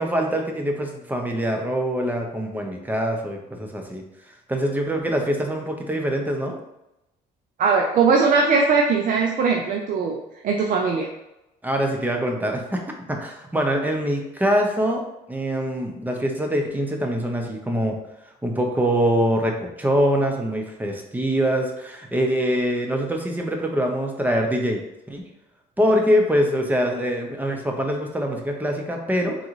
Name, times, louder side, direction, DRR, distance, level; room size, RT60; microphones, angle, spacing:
voice 1, 0.0-4.0 4.5-6.6 11.6-12.8 13.1-18.0 18.4-24.8 25.1-25.2 25.8-29.4, equal, 10° right, 2 dB, 0.8 m, -24 dB
voice 2, 7.6-10.2 10.4-11.1, right 4 dB, 55° right, 1 dB, 0.6 m, -20 dB
3.9 x 3.7 x 3.1 m, 0.89 s
cardioid pair, 110°, 17 cm